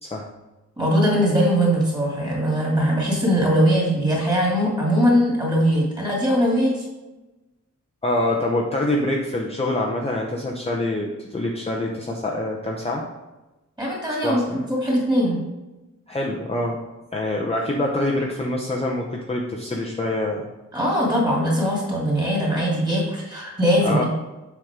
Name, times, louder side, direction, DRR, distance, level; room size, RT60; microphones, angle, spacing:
voice 1, 0.8-6.9 13.8-14.4 14.7-15.4 20.7-24.0, equal, 15° right, -4 dB, 2.6 m, -21 dB
voice 2, 8.0-13.0 14.2-14.6 16.1-16.8 17.1-20.5 23.8-24.0, left 1 dB, 20° left, -2 dB, 0.7 m, -25 dB
7.8 x 5.9 x 3.7 m, 1.0 s
wide cardioid pair, 160°, 31 cm